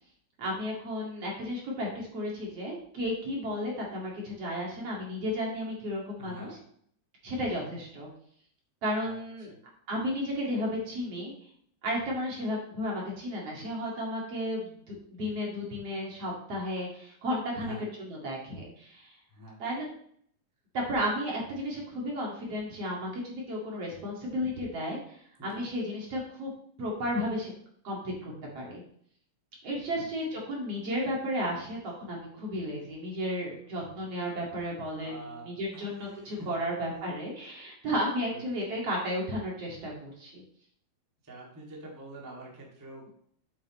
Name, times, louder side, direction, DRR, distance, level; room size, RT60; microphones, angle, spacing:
voice 1, 0.4-6.5 7.2-8.1 8.8-9.5 9.9-11.3 11.8-19.1 19.6-19.9 20.7-26.5 26.8-27.5 27.8-28.8 29.6-40.4, equal, 45° right, -3 dB, 2.7 m, -33 dB
voice 2, 6.2-6.6 9.0-9.2 9.5-9.6 17.5-17.8 19.3-19.6 25.4-25.6 29.9-30.4 33.9-34.0 35.0-36.6 36.9-37.2 38.3-38.4 38.7-38.8 41.2-43.1, right 1 dB, 10° right, -3 dB, 1.1 m, -46 dB
8.6 x 8.6 x 3.1 m, 0.64 s
omnidirectional pair, 4.5 m